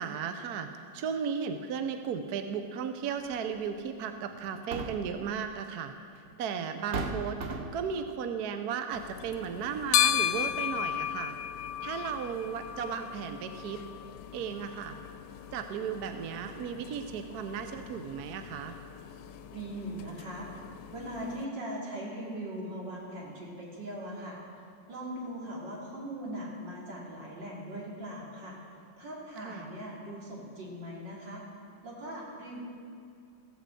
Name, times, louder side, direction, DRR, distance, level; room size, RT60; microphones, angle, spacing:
voice 1, 0.0-5.9 6.4-7.4 7.7-11.4 11.8-13.8 14.3-15.0 15.5-18.8 29.4-29.7, right 7 dB, 65° right, 7 dB, 1.1 m, -35 dB
sound 1, 3.3-3.5 4.4-5.2 6.3-6.4 6.9-7.9, right 3 dB, 50° right, 0.8 m, -35 dB
sound 2, 8.9-21.5, left 11 dB, 80° left, 1.2 m, -35 dB
voice 2, 19.5-20.5 20.9-28.6 29.0-31.4 31.8-32.6, right 1 dB, 90° right, -4 dB, 3.4 m, -40 dB
15.0 x 8.4 x 7.5 m, 2.4 s
omnidirectional pair, 1.9 m